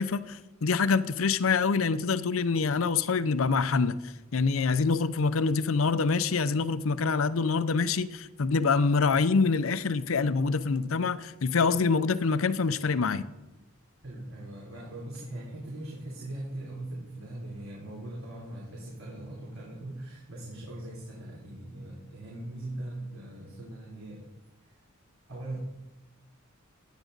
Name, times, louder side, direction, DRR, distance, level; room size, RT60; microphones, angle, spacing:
voice 1, 0.0-4.0 4.3-13.2, left 4 dB, 75° left, 14 dB, 0.6 m, -25 dB
voice 2, 14.0-24.2 24.6-24.8 25.3-25.6, right 1 dB, 85° right, -4 dB, 3.3 m, -40 dB
15.5 x 10.0 x 3.9 m, 1.0 s
head